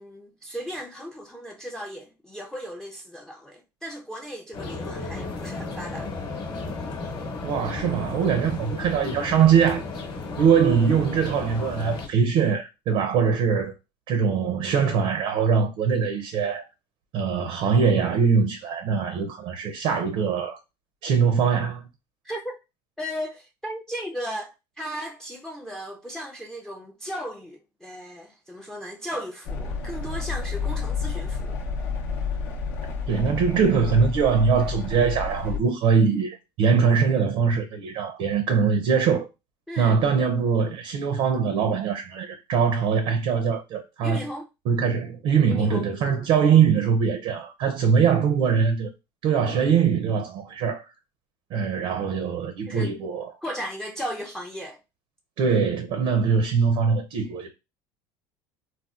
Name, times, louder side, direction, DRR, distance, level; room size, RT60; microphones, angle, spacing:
voice 1, 0.0-6.1 22.2-22.6 23.0-31.6 39.7-40.0 44.0-44.5 45.5-46.3 52.7-53.0 53.4-54.8, equal, 5° left, 0.4 m, -36 dB
sound 1, 4.5-12.1, left 3 dB, 45° left, 0.9 m, -34 dB
voice 2, 7.4-9.8 10.4-13.7 14.1-16.6 17.1-20.6 21.0-21.8 33.1-39.3 39.8-44.2 44.7-48.9 49.2-50.8 51.5-53.3 55.4-57.5, right 6 dB, 65° right, 0.5 m, -22 dB
sound 2, 29.4-35.6, left 5 dB, 80° left, 0.6 m, -30 dB
4.1 x 2.1 x 2.4 m
supercardioid pair, 105°, 11 cm